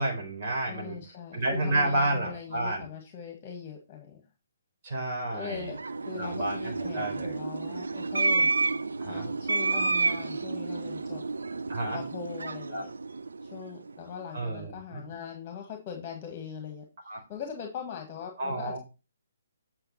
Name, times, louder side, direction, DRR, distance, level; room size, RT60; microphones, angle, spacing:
voice 1, 0.0-1.0 1.3-2.8 4.8-5.7 6.2-7.4 9.0-9.3 11.7-12.0 12.7-12.8 14.3-15.1 17.1-17.2 18.4-18.8, right 1 dB, 40° right, 0 dB, 4.1 m, -30 dB
voice 2, 0.7-4.2 5.3-5.8 6.1-8.5 9.0-11.2 11.9-12.9 13.4-16.8 17.3-18.8, left 7 dB, 25° left, 2 dB, 1.9 m, -41 dB
sound 1, 5.4-14.0, right 3 dB, 65° right, 0.5 m, -30 dB
8.9 x 5.9 x 4.3 m, 0.30 s
figure-of-eight pair, 135°, 0 cm